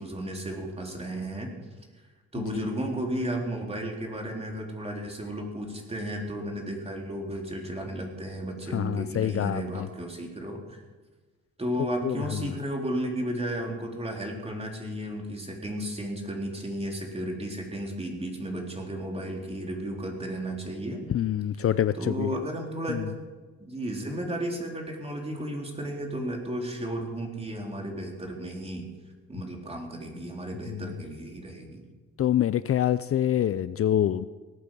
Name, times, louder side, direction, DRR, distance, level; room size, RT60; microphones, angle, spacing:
voice 1, 0.0-1.5 2.3-10.8 11.6-21.0 22.0-23.1 23.6-28.9 29.3-31.8, right 1 dB, 20° right, 1 dB, 3.9 m, -33 dB
voice 2, 8.7-9.9 12.0-12.6 21.1-22.3 22.9-23.1 30.7-30.9 32.2-34.3, left 11 dB, 50° left, 14 dB, 0.6 m, -26 dB
18.0 x 9.4 x 7.7 m, 1.3 s
cardioid pair, 90°, 30 cm